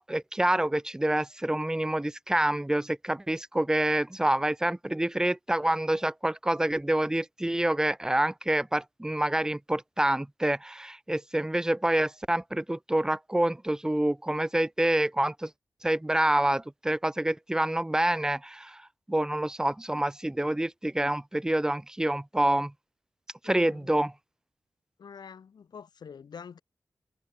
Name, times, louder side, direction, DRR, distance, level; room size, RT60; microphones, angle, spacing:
voice 1, 0.0-15.5 15.8-18.8 19.1-22.7 23.4-24.1, right 1 dB, 10° right, 0.3 m, -27 dB
voice 2, 23.4-23.9 25.0-26.6, left 6 dB, 90° left, 3.6 m, -46 dB
cardioid pair, 45°, 7 cm